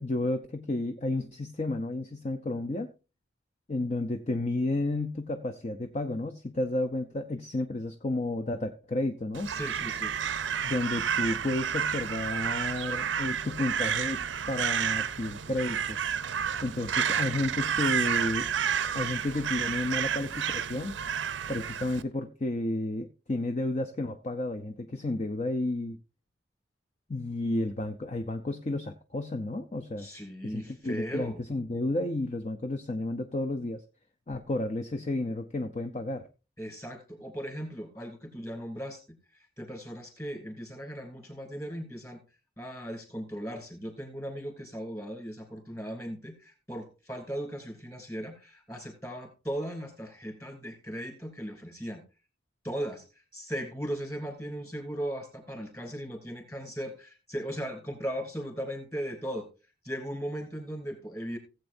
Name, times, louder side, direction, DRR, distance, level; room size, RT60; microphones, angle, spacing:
voice 1, 0.0-2.9 3.7-9.5 10.6-16.0 16.6-18.5 18.9-20.9 21.5-26.0 27.1-30.1 30.4-33.8 34.3-36.3, left 2 dB, 35° left, 7 dB, 0.6 m, -32 dB
Crow, 9.3-22.0, right 8 dB, 70° right, 0.6 m, -30 dB
voice 2, 9.5-10.1 30.0-31.4 36.6-39.0 39.6-42.2 42.6-52.0 52.6-53.0 53.3-59.5 59.8-61.4, equal, 15° left, 3 dB, 2.7 m, -37 dB
17.0 x 7.9 x 2.6 m, 0.31 s
head